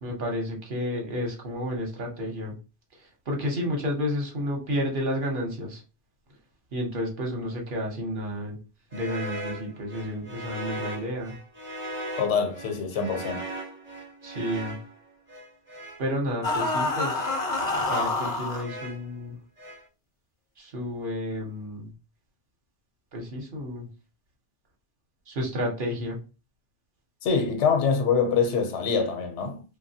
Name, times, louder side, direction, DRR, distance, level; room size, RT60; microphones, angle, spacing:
voice 1, 0.0-2.5 3.3-5.8 6.7-8.6 8.9-11.3 14.2-14.8 16.0-17.3 17.9-19.3 20.6-21.9 23.1-23.9 25.3-26.2, equal, 50° right, 0.8 m, -31 dB
sound 1, 8.9-16.0 16.7-17.5 18.2-19.1 19.6-19.9, right 1 dB, 15° right, 0.5 m, -39 dB
voice 2, 12.2-13.4 27.2-29.6, left 6 dB, 85° left, 0.9 m, -24 dB
sound 2, 16.4-18.6, left 2 dB, 45° left, 0.5 m, -27 dB
2.8 x 2.2 x 2.7 m
omnidirectional pair, 1.2 m